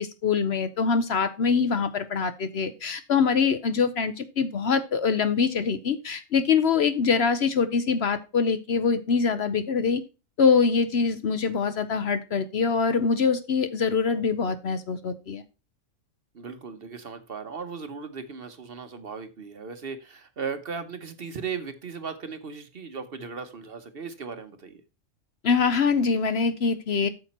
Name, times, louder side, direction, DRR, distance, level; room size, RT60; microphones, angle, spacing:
voice 1, 0.0-10.0 10.4-15.4 25.4-27.1, left 5 dB, 55° left, 11 dB, 0.9 m, -24 dB
voice 2, 16.3-24.8, right 5 dB, 50° right, 9 dB, 1.0 m, -37 dB
8.6 x 6.7 x 4.2 m, 0.29 s
omnidirectional pair, 1.4 m